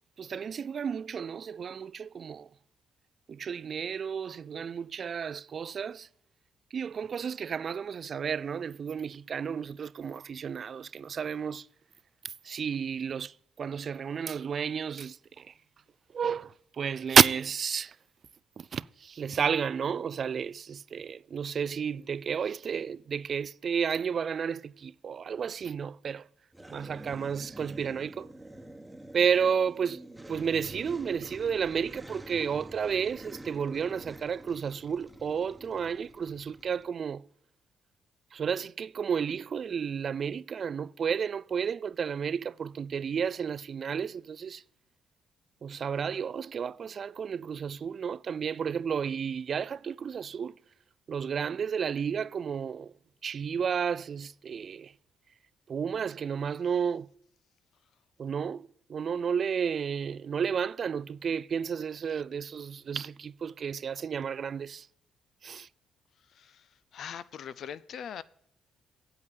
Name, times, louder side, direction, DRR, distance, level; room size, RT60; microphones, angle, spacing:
voice 1, 0.2-2.5 3.3-6.1 6.7-11.7 12.2-15.5 16.1-18.0 18.6-26.3 26.7-28.3 29.1-30.0 30.3-37.2 38.3-44.6 45.6-50.5 51.1-52.9 53.2-54.9 55.7-57.1 58.2-64.9 65.4-65.7, right 7 dB, 50° right, 0.3 m, -31 dB
sound 1, 26.5-36.9, right 1 dB, 10° right, 1.1 m, -47 dB
voice 2, 66.3-68.2, left 8 dB, 65° left, 0.5 m, -42 dB
8.5 x 8.2 x 6.9 m
cardioid pair, 90°, 0 cm